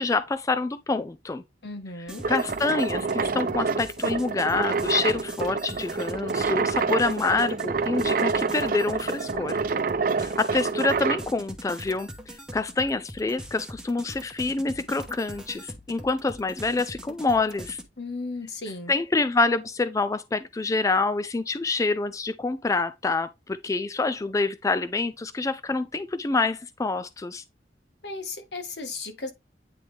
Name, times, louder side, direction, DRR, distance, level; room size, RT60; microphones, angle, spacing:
voice 1, 0.0-1.4 2.3-9.6 10.2-17.8 18.9-27.4, left 3 dB, 20° left, 0.3 m, -27 dB
voice 2, 1.6-2.2 18.0-18.9 28.0-29.3, left 3 dB, 75° left, 1.4 m, -35 dB
sound 1, 2.1-17.8, equal, 5° right, 1.0 m, -42 dB
sound 2, 2.2-11.3, right 4 dB, 50° right, 0.6 m, -27 dB
9.2 x 3.4 x 3.3 m
head